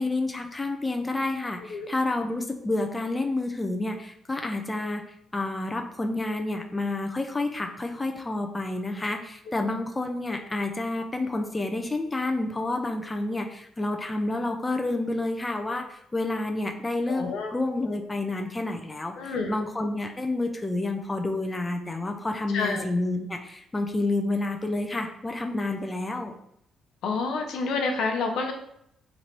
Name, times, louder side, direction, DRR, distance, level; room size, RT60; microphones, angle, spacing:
voice 1, 0.0-5.0 5.3-26.3, left 2 dB, 20° left, 3 dB, 0.5 m, -29 dB
voice 2, 17.1-17.5 19.2-19.5 22.5-22.8 27.0-28.5, left 4 dB, 80° left, 3 dB, 0.6 m, -28 dB
3.1 x 2.6 x 4.4 m, 0.72 s
cardioid pair, 90°, 0 cm